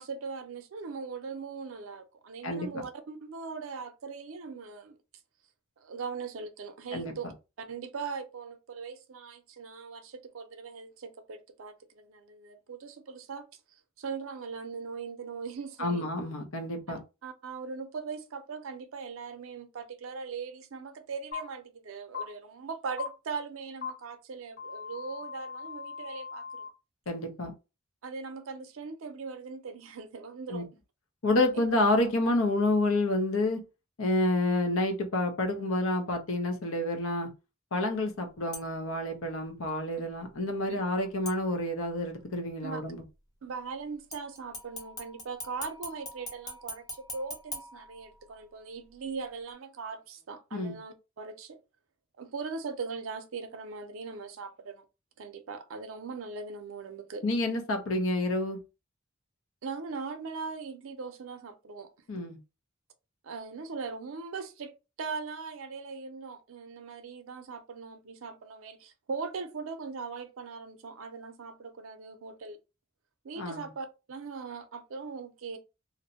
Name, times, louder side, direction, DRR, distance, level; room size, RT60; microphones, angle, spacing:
voice 1, 0.0-4.9 5.8-7.3 7.6-13.5 14.0-16.0 16.9-26.6 28.0-30.7 31.5-31.6 40.7-40.8 42.6-42.8 43.4-51.6 52.2-54.8 55.2-57.2 59.6-61.9 63.2-64.7 65.0-72.6 73.2-75.6, right 5 dB, 85° right, 0.5 m, -40 dB
voice 2, 15.8-17.0 27.1-27.5 30.5-30.6 31.2-33.6 34.0-37.3 37.7-43.0 50.5-50.8 57.2-58.6 62.1-62.4 73.4-73.7, left 2 dB, 80° left, 0.7 m, -29 dB
sound 1, 21.3-21.4 22.1-22.2 23.0-23.1 23.8-23.9 24.6-26.7, left 6 dB, 50° left, 1.0 m, -39 dB
sound 2, 38.5-39.0 41.2-42.0 44.1-48.5 48.9-49.0, left 1 dB, 20° left, 0.6 m, -43 dB
2.5 x 2.1 x 2.7 m
head